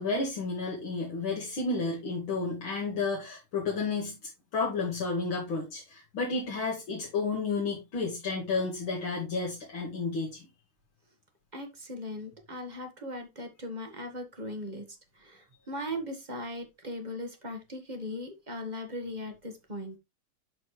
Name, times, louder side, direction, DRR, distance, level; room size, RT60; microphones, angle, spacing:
voice 1, 0.0-10.5, left 4 dB, 65° left, -2 dB, 2.7 m, -32 dB
voice 2, 11.5-14.9 15.1-20.0, left 1 dB, 25° right, 4 dB, 1.2 m, -38 dB
12.0 x 4.3 x 3.1 m, 0.24 s
omnidirectional pair, 2.4 m